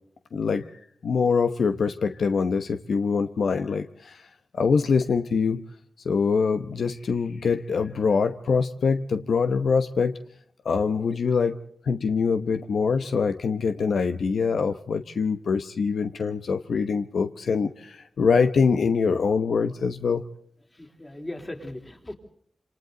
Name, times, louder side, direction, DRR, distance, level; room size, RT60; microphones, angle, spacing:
voice 1, 0.3-0.7 1.0-4.2 4.5-5.6 6.0-10.2 10.6-11.6 11.8-20.2, left 5 dB, 80° left, 8 dB, 1.0 m, -24 dB
voice 2, 20.7-22.2, left 1 dB, 20° left, 3 dB, 3.5 m, -38 dB
27.5 x 27.0 x 3.9 m, 0.62 s
wide cardioid pair, 110°, 0 cm